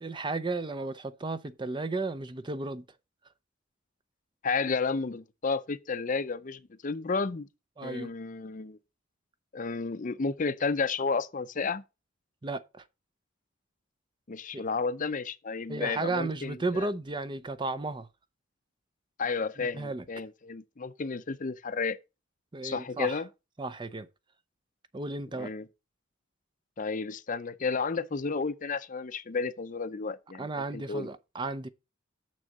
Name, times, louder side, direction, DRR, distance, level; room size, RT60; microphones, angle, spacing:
voice 1, 0.0-2.8 7.8-8.1 12.4-12.8 14.5-14.6 15.7-18.1 19.6-20.0 22.5-23.2 23.6-24.1 24.9-25.5 30.4-31.7, right 3 dB, 25° right, 0.5 m, -34 dB
voice 2, 4.4-7.5 7.8-8.8 9.5-11.8 14.3-16.9 19.2-22.0 22.6-23.3 25.3-25.7 26.8-31.1, left 4 dB, 40° left, 0.6 m, -32 dB
6.9 x 6.2 x 5.2 m
head